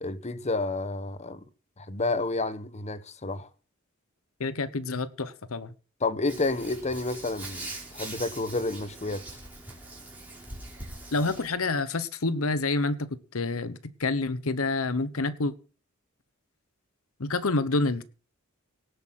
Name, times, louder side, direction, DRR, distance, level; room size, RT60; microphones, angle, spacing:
voice 1, 0.0-1.4 1.8-3.5 6.0-9.2, left 2 dB, 35° left, 1.1 m, -30 dB
voice 2, 4.4-5.7 11.1-15.5 17.2-18.0, left 3 dB, 80° left, 1.0 m, -28 dB
Hands, 6.3-11.5, right 2 dB, 10° right, 4.8 m, -42 dB
18.0 x 8.1 x 5.8 m
head